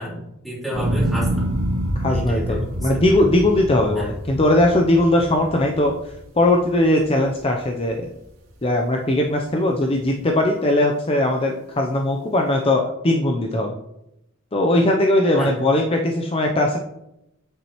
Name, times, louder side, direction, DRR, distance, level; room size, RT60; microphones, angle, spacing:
voice 1, 0.0-1.5 2.1-3.0 3.9-4.1 15.4-15.6, equal, ahead, -7 dB, 3.1 m, -31 dB
sound 1, 0.7-7.0 7.5-8.1, right 1 dB, 75° right, 2.7 m, -26 dB
voice 2, 2.0-8.0 8.6-13.8 14.5-16.8, left 1 dB, 25° left, 1 dB, 0.6 m, -19 dB
8.8 x 7.2 x 3.0 m, 0.85 s
head